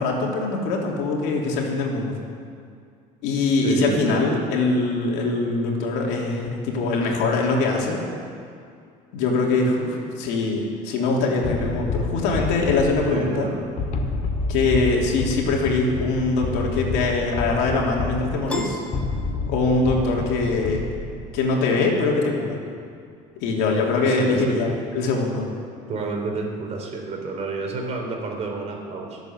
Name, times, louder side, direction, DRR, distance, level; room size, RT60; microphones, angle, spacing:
voice 1, 0.0-2.2 3.2-8.0 9.1-13.5 14.5-18.8 19.5-20.8 21.3-22.6 23.4-25.5, left 3 dB, 85° left, -1 dB, 3.1 m, -23 dB
voice 2, 3.6-4.2 13.1-13.6 24.0-24.8 25.9-29.2, right 3 dB, 40° right, 1 dB, 3.6 m, -30 dB
sound 1, 11.4-21.4, left 4 dB, 50° left, 2.2 m, -29 dB
Piano, 18.5-20.0, left 1 dB, 5° left, 1.9 m, -35 dB
23.0 x 8.1 x 7.4 m, 2.3 s
cardioid pair, 115°, 16 cm